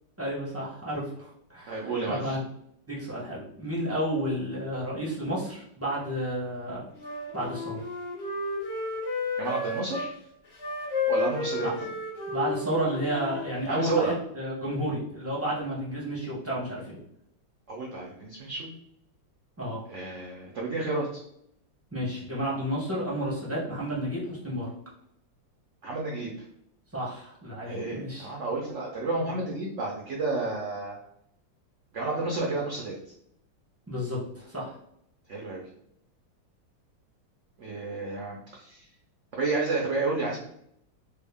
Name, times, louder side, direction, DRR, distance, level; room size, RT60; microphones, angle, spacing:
voice 1, 0.2-2.4 2.9-6.8 7.3-7.8 11.6-11.7 12.3-17.0 19.6-19.8 21.9-24.7 26.9-28.3 33.9-34.7, right 1 dB, 20° right, -6 dB, 0.3 m, -31 dB
voice 2, 1.7-2.4 9.4-10.1 11.1-11.7 13.7-14.2 17.7-18.7 19.9-21.2 25.8-26.5 27.6-31.0 31.9-33.0 35.3-35.6 37.6-38.9 39.3-40.4, right 3 dB, 90° right, -2 dB, 0.6 m, -31 dB
Wind instrument woodwind instrument, 7.0-10.1 10.5-14.0, left 3 dB, 45° left, 0.8 m, -32 dB
3.4 x 2.1 x 3.4 m, 0.74 s
omnidirectional pair, 2.0 m